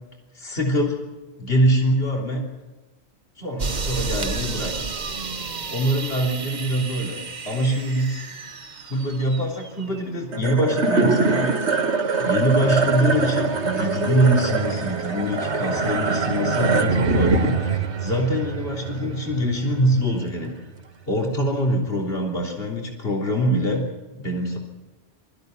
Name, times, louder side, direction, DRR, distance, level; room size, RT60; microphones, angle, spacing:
voice 1, 0.3-1.0 1.4-2.4 3.4-4.7 5.7-8.2 8.9-11.8 12.2-20.5 21.1-23.8 24.1-24.6, equal, 60° left, -1 dB, 3.8 m, -24 dB
sound 1, 3.6-10.0, right 4 dB, 40° right, 1.1 m, -32 dB
sound 2, 10.3-20.8, right 4 dB, 80° right, 1.8 m, -24 dB
24.0 x 14.5 x 9.5 m, 1.1 s
omnidirectional pair, 1.1 m